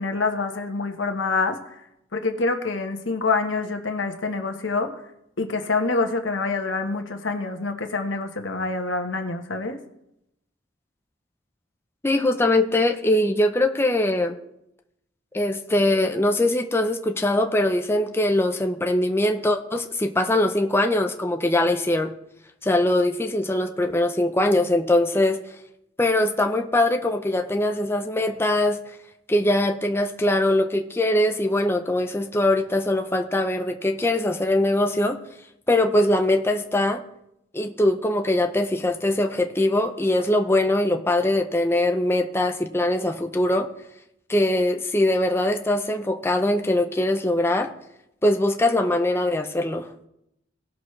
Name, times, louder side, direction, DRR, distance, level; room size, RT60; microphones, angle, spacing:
voice 1, 0.0-1.6 2.1-4.9 5.4-9.8, left 3 dB, 85° left, 5 dB, 1.3 m, -26 dB
voice 2, 12.0-14.4 15.3-22.1 22.6-25.4 26.0-28.8 29.3-35.2 35.7-37.0 37.5-43.7 44.3-47.7 48.2-49.9, left 1 dB, 15° left, 4 dB, 0.6 m, -22 dB
18.0 x 6.2 x 3.2 m, 0.82 s
head